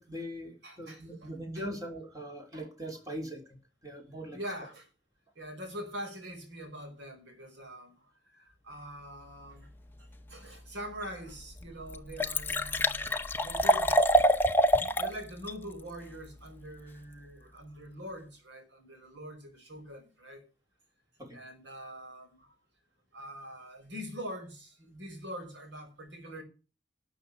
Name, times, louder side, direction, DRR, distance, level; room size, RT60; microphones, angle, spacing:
voice 1, 0.0-3.6 3.8-4.4 13.6-13.7 21.2-21.4, equal, 20° right, 3.9 m, -41 dB
voice 2, 0.6-1.7 4.3-4.9 5.4-9.7 10.0-14.0 15.0-20.4 21.3-22.5 23.1-26.4, equal, 75° right, 5.3 m, -44 dB
Liquid, 11.0-11.1 11.6-11.7 11.9-15.1 15.5-15.6, equal, 10° left, 0.9 m, -25 dB
12.5 x 7.0 x 8.6 m
head